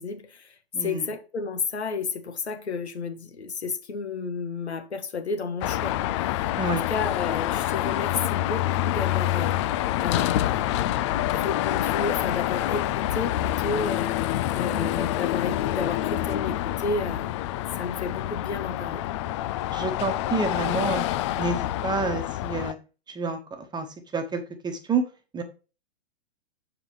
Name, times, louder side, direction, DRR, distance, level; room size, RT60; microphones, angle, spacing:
voice 1, 0.0-0.6 0.8-9.6 10.0-11.0 11.3-17.4 17.8-19.0, left 4 dB, 85° left, 1.7 m, -32 dB
voice 2, 0.7-1.1 6.6-6.9 19.7-21.1 21.3-22.8 23.1-23.9 24.1-25.1 25.3-25.4, right 3 dB, 15° right, 1.2 m, -29 dB
Car passing by / Traffic noise roadway noise / Engine, 5.6-22.7, left 14 dB, 30° left, 0.3 m, -27 dB
7.2 x 4.9 x 5.1 m
hypercardioid pair, 120°, 32 cm